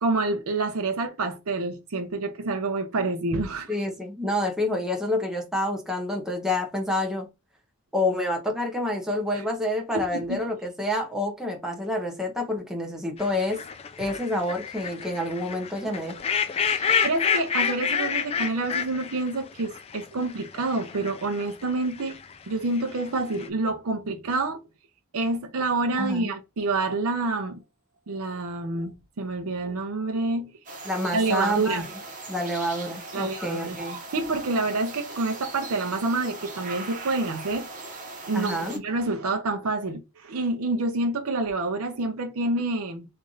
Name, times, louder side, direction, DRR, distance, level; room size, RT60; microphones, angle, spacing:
voice 1, 0.0-3.7 9.9-10.4 16.7-24.6 25.1-27.6 28.1-30.5 31.1-31.9 33.1-37.7 38.3-43.1, right 3 dB, 70° right, 0.5 m, -28 dB
voice 2, 3.7-7.3 7.9-13.6 14.0-16.2 26.0-26.3 30.8-31.9 32.3-34.0 38.3-38.8, left 1 dB, ahead, 0.7 m, -28 dB
sound 1, 13.2-22.3 22.8-23.5, left 7 dB, 25° left, 0.3 m, -29 dB
sound 2, 30.7-38.8, right 3 dB, 35° right, 0.9 m, -39 dB
3.1 x 2.5 x 3.8 m
head